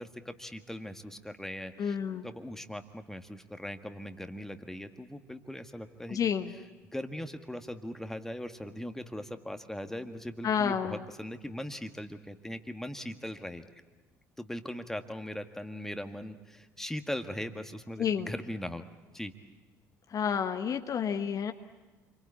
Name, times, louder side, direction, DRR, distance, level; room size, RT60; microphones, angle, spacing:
voice 1, 0.0-2.0 2.2-6.2 6.9-13.6 14.4-18.8 19.1-19.3, left 1 dB, 5° left, 7 dB, 1.8 m, -39 dB
voice 2, 1.8-2.3 6.1-6.5 10.4-11.0 18.0-18.3 20.1-21.5, left 7 dB, 40° left, 7 dB, 1.3 m, -30 dB
29.0 x 23.5 x 8.5 m, 1.2 s
figure-of-eight pair, 55°, 9 cm